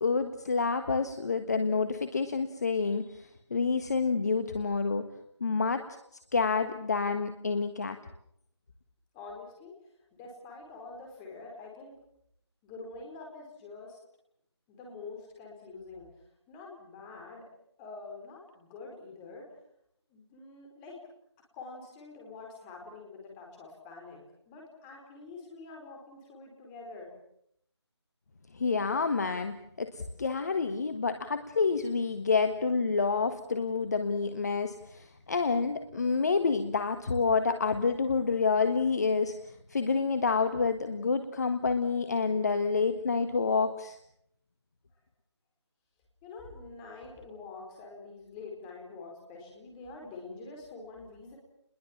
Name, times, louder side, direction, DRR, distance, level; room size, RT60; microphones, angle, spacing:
voice 1, 0.0-5.0 5.4-5.8 6.3-8.0 28.5-39.4 39.7-44.0, left 4 dB, 35° left, 9 dB, 1.5 m, -28 dB
voice 2, 9.1-9.7 10.1-11.9 12.6-14.0 14.7-16.1 16.5-17.4 17.8-19.5 20.1-21.0 21.5-27.1 46.2-51.4, left 3 dB, 10° left, 0 dB, 4.6 m, -46 dB
29.0 x 21.5 x 7.3 m, 0.71 s
figure-of-eight pair, 160°, 15 cm